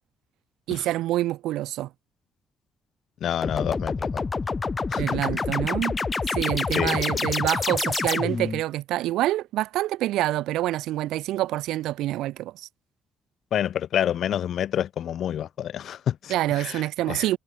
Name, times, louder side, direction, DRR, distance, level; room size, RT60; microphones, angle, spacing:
voice 1, 0.7-1.9 5.0-6.0 6.3-12.7 16.3-17.4, right 15 dB, 90° right, 1.3 m, -26 dB
voice 2, 3.2-4.1 4.9-5.0 6.7-7.0 13.5-17.3, left 10 dB, 70° left, 0.9 m, -28 dB
sound 1, 3.4-8.6, left 4 dB, 30° left, 0.6 m, -27 dB
cardioid pair, 90°, 0 cm